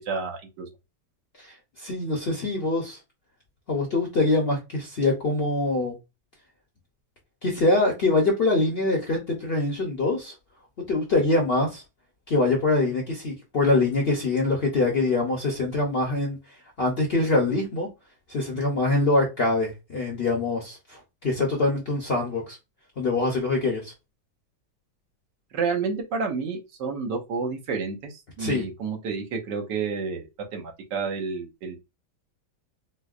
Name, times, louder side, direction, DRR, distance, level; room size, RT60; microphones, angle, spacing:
voice 1, 0.1-0.7 25.5-31.8, right 5 dB, 80° right, 1.5 m, -30 dB
voice 2, 1.4-3.0 3.7-5.9 7.4-10.3 10.9-11.8 12.3-16.4 16.8-17.9 18.3-22.6 23.0-23.9 28.4-28.7, left 2 dB, 50° left, 0.7 m, -24 dB
4.4 x 2.1 x 2.4 m
omnidirectional pair, 1.8 m